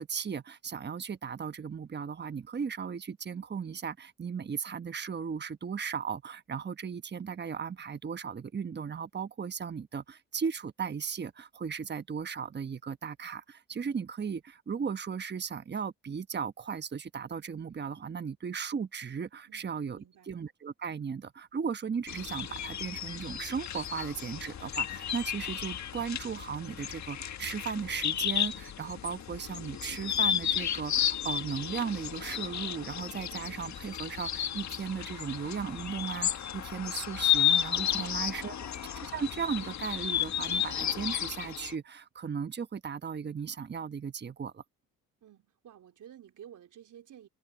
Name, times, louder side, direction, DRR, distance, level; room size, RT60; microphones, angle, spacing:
voice 1, 0.0-20.0 20.3-38.6 39.0-44.6, right 6 dB, 30° right, 1.2 m, -36 dB
voice 2, 19.5-20.3 37.9-38.7 45.2-47.3, right 10 dB, 65° right, 4.4 m, -53 dB
sound 1, 22.1-41.7, left 10 dB, 55° left, 1.6 m, -33 dB
supercardioid pair, 75°, 34 cm